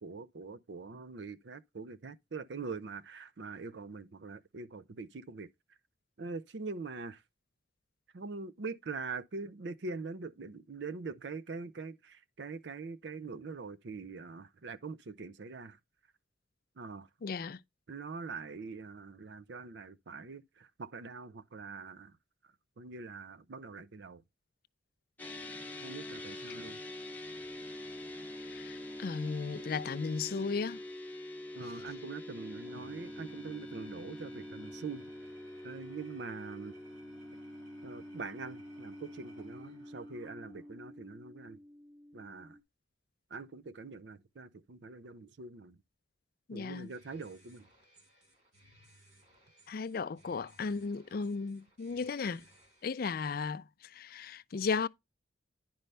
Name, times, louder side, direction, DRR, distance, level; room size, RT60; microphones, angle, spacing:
voice 1, 0.0-5.5 6.2-7.2 8.1-15.8 16.8-17.1 17.9-22.2 22.8-24.2 25.8-26.8 31.5-35.1 35.6-36.7 37.8-41.6 42.1-42.6 43.3-45.8 46.5-47.7, right 4 dB, 60° right, 0.5 m, -43 dB
voice 2, 17.2-17.6 28.5-30.8 46.5-46.9 49.7-52.4 52.8-54.9, left 5 dB, 50° left, 0.4 m, -35 dB
sound 1, 25.2-42.6, left 1 dB, 10° left, 0.8 m, -45 dB
Engine / Tools, 32.5-40.9, right 2 dB, 80° right, 2.6 m, -61 dB
sound 2, 46.7-53.2, equal, 35° right, 3.1 m, -63 dB
10.0 x 5.3 x 3.3 m
head